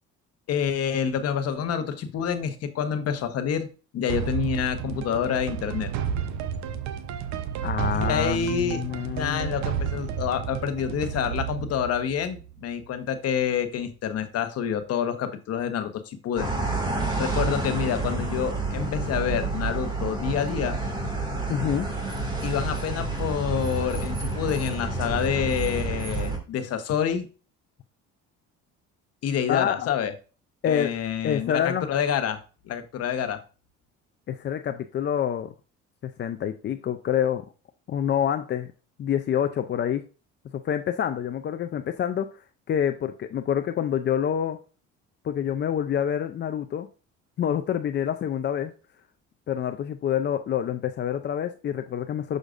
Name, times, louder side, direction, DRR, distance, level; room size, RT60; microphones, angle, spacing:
voice 1, 0.5-3.7 3.9-5.9 7.9-16.5 17.2-20.8 22.4-27.3 29.2-30.1 30.6-33.4, left 8 dB, 55° left, 1.1 m, -28 dB
sound 1, 4.1-12.9, right 8 dB, 70° right, 0.7 m, -32 dB
voice 2, 7.6-9.6 21.5-21.9 29.5-29.9 30.6-30.9 31.2-31.9 34.3-35.5 36.0-37.4 37.9-38.7 39.0-40.0 40.6-44.6 45.2-46.9 47.4-48.7 49.5-52.4, left 9 dB, 40° left, 0.5 m, -27 dB
sound 2, 16.4-26.4, right 3 dB, 15° right, 2.0 m, -29 dB
6.5 x 6.3 x 2.5 m
cardioid pair, 105°, 29 cm